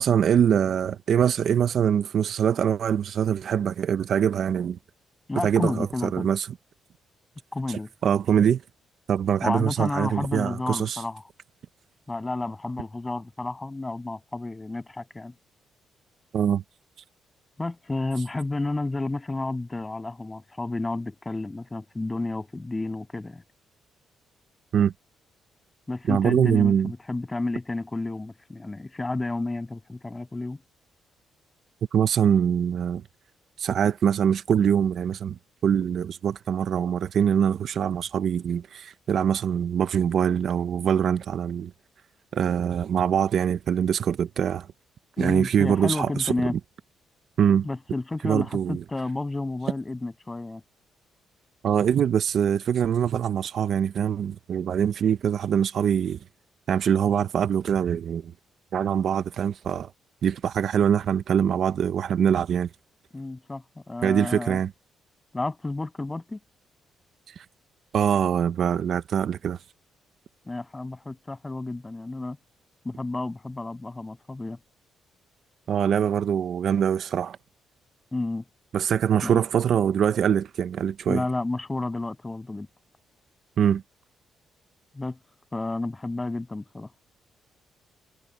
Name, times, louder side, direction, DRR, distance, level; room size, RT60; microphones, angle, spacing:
voice 1, 0.0-4.8 5.4-5.9 6.1-6.5 7.7-8.6 9.1-11.0 16.3-16.6 24.7-24.9 26.1-26.9 31.9-33.0 33.6-41.7 42.3-44.7 45.2-46.3 47.4-47.7 48.2-48.8 51.6-56.2 56.7-58.3 58.7-59.9 60.2-62.7 64.0-64.7 67.3-67.4 67.9-69.6 75.7-77.4 78.7-81.2 83.6-83.8, right 8 dB, 60° right, 0.9 m, -23 dB
voice 2, 5.3-6.3 7.5-7.9 9.4-11.2 12.1-15.3 17.6-23.4 25.9-30.6 45.2-46.5 47.6-50.6 63.1-64.6 65.3-66.4 70.5-72.4 72.8-74.6 78.1-78.4 79.2-79.4 81.1-82.7 84.9-85.2 85.5-86.9, left 2 dB, 20° left, 7.5 m, -31 dB
cardioid pair, 90°, 0 cm